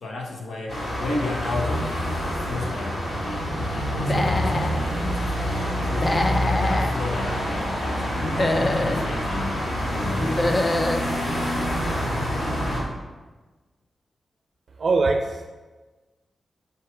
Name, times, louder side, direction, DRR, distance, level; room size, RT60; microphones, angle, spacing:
voice 1, 0.0-5.5 5.8-6.3 6.6-9.6 9.9-10.6, left 2 dB, 75° left, 0 dB, 1.2 m, -33 dB
sound 1, 0.7-12.8, equal, 60° left, 2.2 m, -26 dB
Human voice / Animal, 4.0-4.8 5.9-6.9 8.2-9.0 10.2-11.0, left 2 dB, 25° left, 0.5 m, -24 dB
voice 2, 14.8-15.5, right 3 dB, 50° right, 4 dB, 0.5 m, -22 dB
6.5 x 4.6 x 4.8 m, 1.3 s
wide cardioid pair, 145°, 0 cm